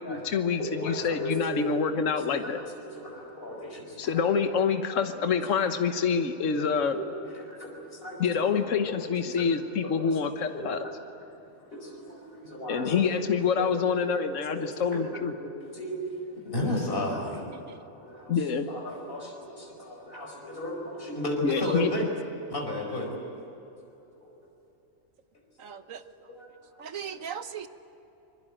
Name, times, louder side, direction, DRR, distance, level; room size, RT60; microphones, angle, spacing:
voice 1, 0.0-2.6 4.0-6.9 8.2-10.8 12.7-15.3 18.3-18.7 21.4-21.9, left 6 dB, 70° left, 7 dB, 1.5 m, -27 dB
voice 2, 0.6-1.8 2.8-4.2 5.1-5.4 6.5-8.6 8.9-9.9 10.5-10.9 11.7-13.3 13.6-13.7 14.0-14.1 14.5-15.1 15.4-16.1 16.4-18.4 18.7-22.1 22.5-23.1 24.2-24.3 25.6-25.7 26.3-26.5 26.8-27.2, left 1 dB, 40° left, 0 dB, 4.9 m, -35 dB
voice 3, 25.6-26.4 26.8-27.7, right 7 dB, 75° right, 10 dB, 1.5 m, -39 dB
26.0 x 22.5 x 8.9 m, 2.9 s
omnidirectional pair, 1.4 m